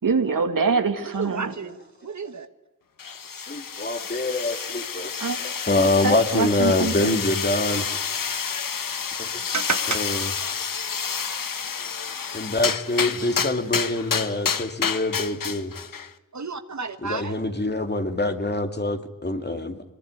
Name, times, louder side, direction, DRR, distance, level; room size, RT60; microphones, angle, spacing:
voice 1, 0.0-1.5 5.2-5.4 6.0-7.1, right 4 dB, 75° right, 6 dB, 2.6 m, -24 dB
voice 2, 1.0-2.5 7.7-8.0 9.5-10.0 10.4-10.5 16.3-17.3, right 5 dB, 55° right, 9 dB, 1.5 m, -31 dB
sound 1, 3.0-16.1, left 6 dB, 80° left, 1.2 m, -29 dB
voice 3, 3.3-5.1 5.7-7.9 9.2-9.3 9.9-10.2 11.8-12.1 12.3-15.8 17.0-19.8, left 2 dB, 30° left, 6 dB, 2.5 m, -25 dB
23.5 x 21.5 x 9.9 m, 1.1 s
wide cardioid pair, 75°, 33 cm